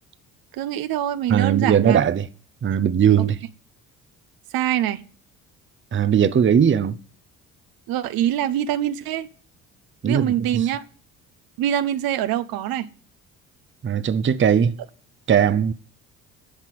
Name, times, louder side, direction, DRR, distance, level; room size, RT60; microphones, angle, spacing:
voice 1, 0.5-2.0 3.2-3.3 4.5-5.0 7.9-9.3 10.1-10.8 11.6-12.9, right 11 dB, 60° right, 1.0 m, -24 dB
voice 2, 1.3-2.3 2.6-3.4 5.9-7.0 10.0-10.3 10.5-10.7 13.8-14.8 15.3-15.7, right 8 dB, 30° right, 0.9 m, -19 dB
11.5 x 5.8 x 8.4 m
hypercardioid pair, 55°, 39 cm